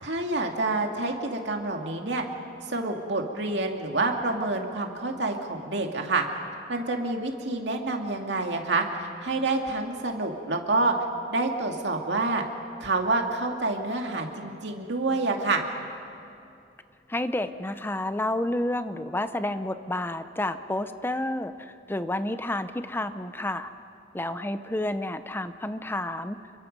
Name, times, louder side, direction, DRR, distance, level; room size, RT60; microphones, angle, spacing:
voice 1, 0.0-2.2 2.6-6.2 6.7-11.0 11.3-12.4 12.8-15.6, right 2 dB, 70° right, 2 dB, 2.3 m, -28 dB
voice 2, 17.1-23.7 24.1-26.4, left 1 dB, 10° left, 10 dB, 0.7 m, -30 dB
29.5 x 23.0 x 5.4 m, 2.7 s
head